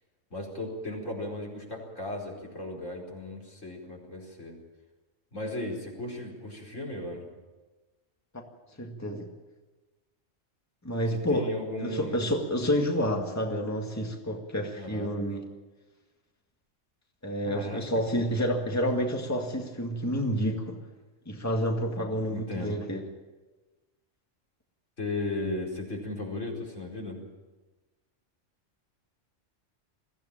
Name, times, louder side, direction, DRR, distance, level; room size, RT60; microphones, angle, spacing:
voice 1, 0.3-4.6 5.3-7.3 11.1-12.3 14.7-15.1 17.4-17.8 22.1-22.8 25.0-27.2, left 2 dB, 80° left, -2 dB, 5.2 m, -36 dB
voice 2, 8.8-9.3 10.8-11.5 11.8-15.4 17.2-20.8 21.3-23.0, equal, 15° left, 2 dB, 2.0 m, -29 dB
22.0 x 15.5 x 8.9 m, 1.2 s
omnidirectional pair, 1.3 m